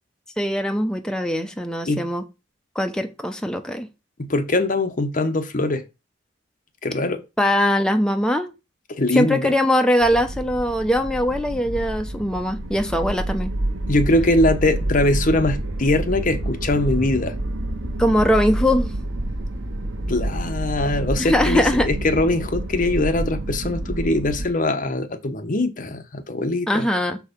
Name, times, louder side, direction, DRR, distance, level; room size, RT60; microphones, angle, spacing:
voice 1, 0.4-2.2 2.8-3.9 7.4-8.5 9.1-13.5 18.0-18.9 21.2-21.9 26.7-27.2, left 1 dB, 5° left, 0.8 m, -21 dB
voice 2, 4.2-5.8 6.8-7.2 8.9-9.5 13.9-17.4 20.1-26.9, left 2 dB, 45° left, 0.9 m, -22 dB
sound 1, 10.0-24.5, right 1 dB, 70° right, 1.1 m, -28 dB
6.8 x 4.7 x 5.2 m
head